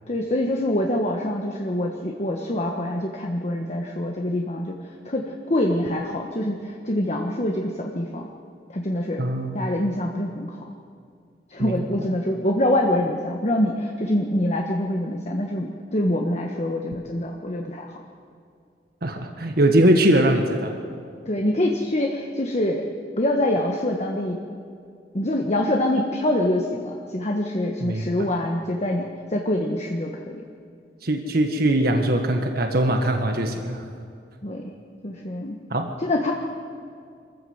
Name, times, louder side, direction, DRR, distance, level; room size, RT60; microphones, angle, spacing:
voice 1, 0.1-8.3 8.7-9.2 9.5-10.7 11.5-18.0 21.2-22.9 23.2-24.4 25.1-30.5 34.4-34.7 35.0-35.6 36.0-36.3, left 1 dB, 40° left, 1 dB, 1.4 m, -25 dB
voice 2, 9.2-9.7 11.6-11.7 19.0-20.7 27.8-28.1 31.0-33.8 35.7-35.9, right 1 dB, 60° right, 4 dB, 1.5 m, -21 dB
25.0 x 14.5 x 8.0 m, 2.3 s
head